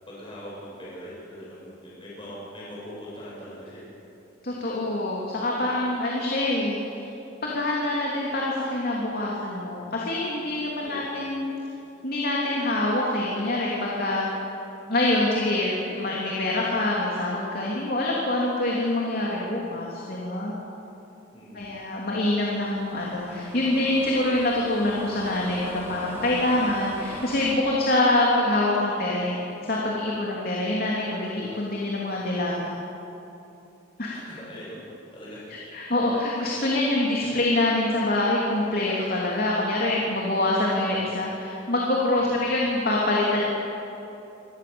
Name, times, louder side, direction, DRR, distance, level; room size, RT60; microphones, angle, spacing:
voice 1, 0.1-3.8 10.8-11.2 21.3-21.7 34.1-34.8 35.1-35.5 42.2-42.5, equal, 25° left, -6 dB, 7.2 m, -41 dB
voice 2, 4.4-7.1 7.4-11.5 12.0-14.3 14.9-20.5 21.5-32.7 34.0-34.1 35.5-43.4, left 1 dB, 50° left, -4 dB, 3.2 m, -25 dB
sound 1, 22.4-27.6, equal, 10° right, 2.8 m, -41 dB
26.5 x 18.5 x 7.2 m, 2.9 s
head